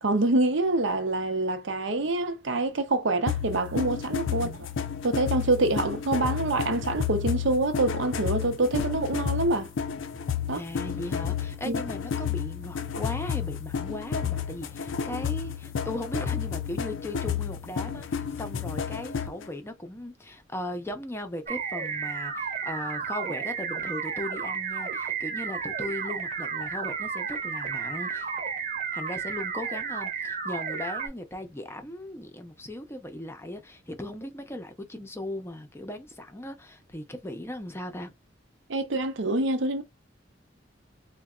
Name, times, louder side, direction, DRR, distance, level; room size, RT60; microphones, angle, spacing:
voice 1, 0.0-4.5 5.0-9.7 10.5-10.6 11.7-11.8 38.7-39.8, right 2 dB, 75° right, 0.7 m, -26 dB
sound 1, 3.3-19.4, left 7 dB, 85° left, 0.4 m, -31 dB
voice 2, 4.3-4.6 10.5-28.3 28.9-38.1, left 1 dB, 15° left, 0.5 m, -38 dB
sound 2, 21.5-31.1, right 6 dB, 45° right, 0.8 m, -32 dB
3.9 x 2.2 x 2.3 m
head